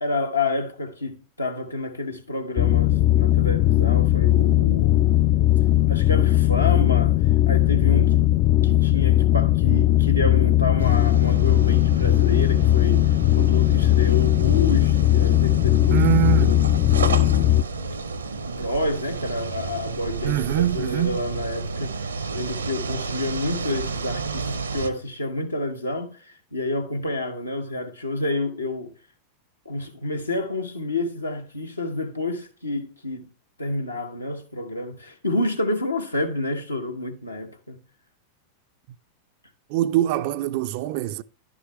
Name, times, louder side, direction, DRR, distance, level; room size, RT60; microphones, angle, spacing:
voice 1, 0.0-5.1 5.9-8.3 8.6-17.5 18.4-28.9 29.6-33.3 33.6-37.8, left 2 dB, 80° left, 1.1 m, -29 dB
sound 1, 2.6-17.6, left 14 dB, 40° left, 0.3 m, -18 dB
sound 2, 10.8-24.9, right 4 dB, 75° right, 0.7 m, -31 dB
voice 2, 15.9-16.6 20.2-21.2 39.7-41.2, right 13 dB, 50° right, 0.3 m, -23 dB
10.5 x 6.2 x 3.1 m
figure-of-eight pair, 90°, 0 cm